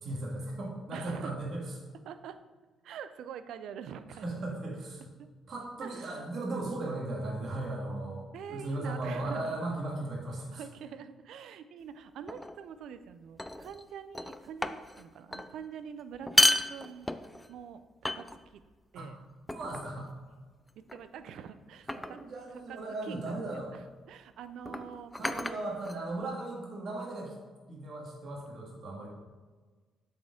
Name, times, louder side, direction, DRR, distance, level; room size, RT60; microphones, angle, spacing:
voice 1, 0.0-1.7 4.2-5.1 5.5-10.6 18.9-19.1 19.5-20.1 21.9-23.8 25.1-27.3 27.7-29.1, right 2 dB, 55° right, -3 dB, 1.7 m, -37 dB
voice 2, 0.9-1.4 2.0-2.4 2.8-4.4 5.2-5.3 5.8-6.3 8.3-9.6 10.5-17.1 17.5-17.8 18.1-18.3 18.5-18.6 18.9-19.2 20.9-22.2 22.5-25.1, right 8 dB, 80° right, 11 dB, 0.4 m, -45 dB
sound 1, 12.3-12.6 13.4-13.8 14.1-15.0 15.3-15.5 16.1-17.5 18.0-18.6 19.5-19.9 20.9-21.2 21.9-22.3 23.5-23.6 24.6-26.3, left 1 dB, 10° left, 0.4 m, -31 dB
7.7 x 4.4 x 3.6 m, 1.3 s
cardioid pair, 90°, 0 cm